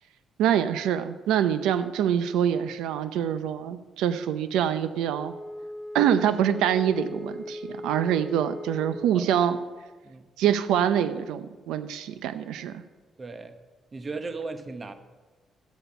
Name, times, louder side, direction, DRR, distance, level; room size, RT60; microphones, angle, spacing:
voice 1, 0.4-5.3 5.9-9.6 10.4-12.8, right 9 dB, 90° right, 12 dB, 0.6 m, -25 dB
Wind instrument woodwind instrument, 5.0-9.2, left 1 dB, 5° left, 2.2 m, -39 dB
voice 2, 13.2-13.6 13.9-14.9, right 3 dB, 30° right, 9 dB, 1.0 m, -36 dB
13.0 x 8.1 x 5.7 m, 1.3 s
cardioid pair, 90°, 0 cm